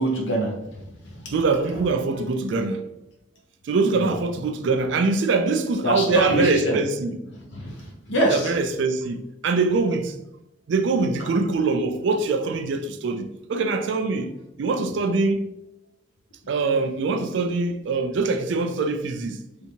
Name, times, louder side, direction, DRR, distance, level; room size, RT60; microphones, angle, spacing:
voice 1, 0.0-1.4 1.7-1.8 3.9-4.1 5.8-6.8 7.4-8.6 11.2-11.3, right 1 dB, 60° left, 0.6 m, -25 dB
voice 2, 1.3-2.8 3.6-7.2 8.3-10.1 10.7-14.3 14.6-15.4 16.5-19.4, right 3 dB, 60° right, 0.3 m, -23 dB
3.4 x 2.8 x 2.7 m
head